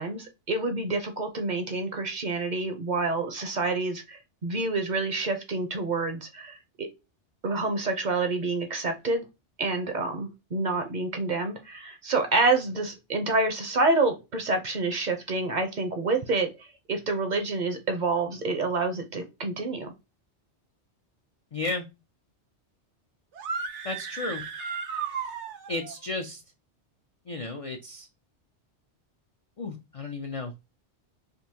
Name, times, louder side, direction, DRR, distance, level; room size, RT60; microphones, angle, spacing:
voice 1, 0.0-6.9 7.4-9.2 9.6-19.9, right 3 dB, 50° right, 0.6 m, -28 dB
voice 2, 21.5-21.9 23.8-24.4 25.7-26.4 27.3-28.1 29.6-30.5, left 3 dB, 60° left, 0.3 m, -33 dB
sound 1, 23.3-25.9, right 5 dB, 85° right, 1.0 m, -34 dB
3.7 x 2.6 x 2.7 m
omnidirectional pair, 1.2 m